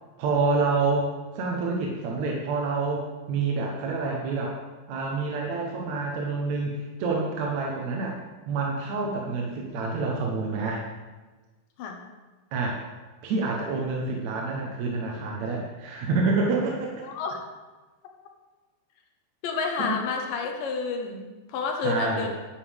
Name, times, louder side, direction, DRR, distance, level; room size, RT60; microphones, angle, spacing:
voice 1, 0.2-4.6 4.9-8.2 8.5-10.8 12.5-12.8 13.2-17.0 19.9-20.0 21.8-22.3, right 3 dB, 65° right, -1 dB, 2.0 m, -27 dB
voice 2, 17.0-17.4 19.4-22.3, left 5 dB, 70° left, 3 dB, 2.6 m, -30 dB
11.0 x 10.0 x 3.5 m, 1.3 s
omnidirectional pair, 4.2 m